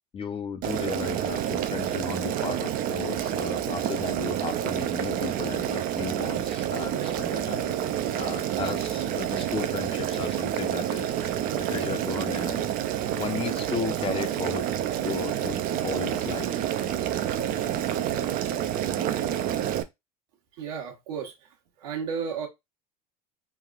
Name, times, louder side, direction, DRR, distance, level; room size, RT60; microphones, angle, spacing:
voice 1, 0.1-12.7 13.2-14.6 15.0-15.6 15.8-16.6, left 6 dB, 30° left, 0.6 m, -35 dB
Boiling, 0.6-19.8, right 11 dB, 45° right, 0.5 m, -28 dB
voice 2, 20.6-21.5 21.8-22.5, right 6 dB, 70° right, 1.2 m, -33 dB
3.3 x 2.4 x 2.3 m
hypercardioid pair, 80°, 20 cm